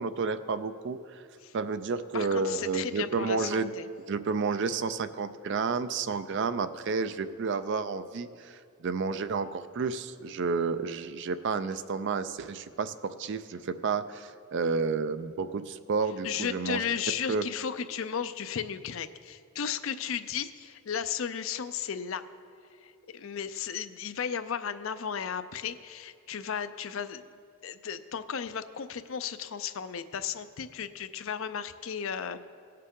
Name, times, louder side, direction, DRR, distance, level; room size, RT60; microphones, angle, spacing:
voice 1, 0.0-1.2 1.5-3.7 4.1-16.8 17.3-17.5, right 4 dB, 55° right, 12 dB, 0.4 m, -31 dB
voice 2, 2.1-3.9 16.2-22.3 22.8-27.3 27.6-32.5, left 7 dB, 65° left, 11 dB, 0.5 m, -35 dB
17.5 x 6.6 x 3.7 m, 2.4 s
head